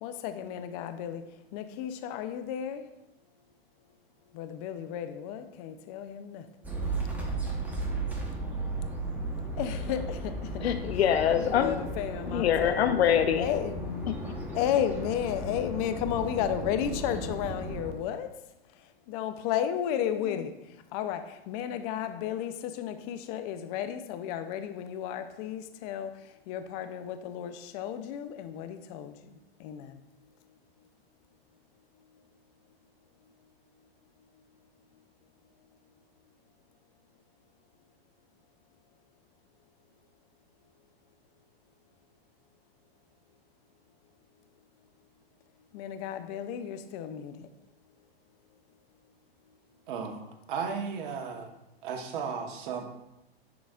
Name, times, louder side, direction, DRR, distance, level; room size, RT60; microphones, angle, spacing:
voice 1, 0.0-1.2 1.5-2.8 4.3-6.5 9.6-10.5 11.4-12.9 13.4-14.1 14.5-18.3 19.1-20.6 20.9-26.2 26.5-29.3 29.6-30.0 45.7-47.5, left 10 dB, 40° left, 9 dB, 0.5 m, -33 dB
sound 1, 6.6-17.9, right 2 dB, 5° right, 1.0 m, -35 dB
voice 2, 10.6-11.7 12.3-13.5 14.1-14.2, left 9 dB, 80° left, 9 dB, 0.6 m, -24 dB
voice 3, 49.9-51.5 51.8-52.9, right 6 dB, 50° right, 3 dB, 1.1 m, -35 dB
10.5 x 3.9 x 2.4 m, 0.90 s
hypercardioid pair, 120°, 31 cm